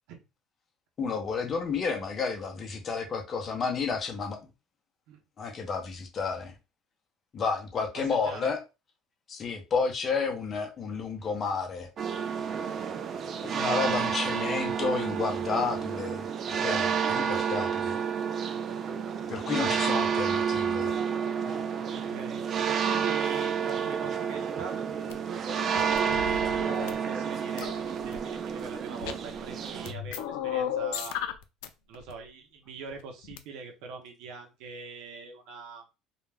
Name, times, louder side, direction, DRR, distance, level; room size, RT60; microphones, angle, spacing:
voice 1, 1.0-4.4 5.4-6.5 7.3-8.6 9.3-11.9 13.4-16.3 16.6-18.0 19.3-21.0, left 5 dB, 30° left, 0.6 m, -31 dB
voice 2, 7.9-8.5 20.1-20.2 21.9-31.2 31.9-35.9, right 5 dB, 75° right, 0.7 m, -43 dB
sound 1, 12.0-29.9, right 7 dB, 35° right, 0.3 m, -30 dB
sound 2, 25.1-25.2 25.7-26.9 27.6-28.2 28.9-29.5 29.9-31.7 31.9-32.1 33.2-33.4, left 9 dB, 90° left, 0.3 m, -34 dB
2.3 x 2.1 x 3.3 m
cardioid pair, 140°, 0 cm